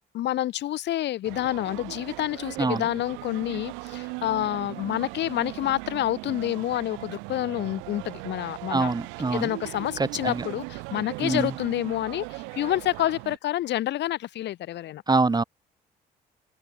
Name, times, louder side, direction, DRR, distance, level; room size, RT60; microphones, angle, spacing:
voice 1, 0.1-8.9 9.3-15.0, left 13 dB, 70° left, 1.3 m, -28 dB
sound 1, 1.2-13.4, right 31 dB, 90° right, 1.2 m, -39 dB
voice 2, 8.7-9.5 10.2-10.4 11.2-11.5 15.1-15.4, right 3 dB, 20° right, 1.1 m, -24 dB
open air
supercardioid pair, 65°, 19 cm